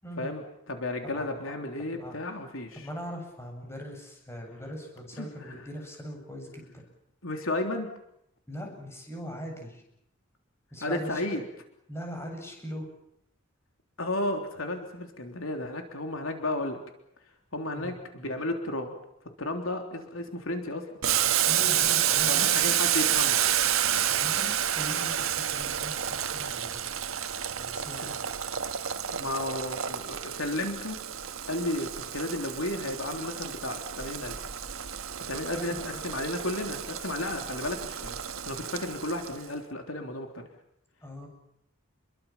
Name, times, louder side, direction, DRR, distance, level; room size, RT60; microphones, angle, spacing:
voice 1, 0.2-2.9 5.2-5.6 7.2-7.9 10.8-11.4 14.0-16.8 17.5-18.9 19.4-20.9 22.3-23.4 28.0-28.1 29.1-31.0 31.5-34.5 35.3-38.2 38.5-40.5, left 1 dB, 75° left, 4 dB, 3.5 m, -33 dB
voice 2, 1.0-1.5 1.9-2.4 2.7-6.8 8.5-9.8 10.7-11.2 11.9-12.9 17.8-18.0 21.4-22.6 23.9-26.9 27.5-28.1 35.5-36.2 41.0-41.3, equal, 10° left, 1 dB, 8.0 m, -41 dB
Boiling, 21.0-39.4, right 10 dB, 85° right, 1.5 m, -29 dB
29.5 x 22.5 x 7.4 m, 0.77 s
head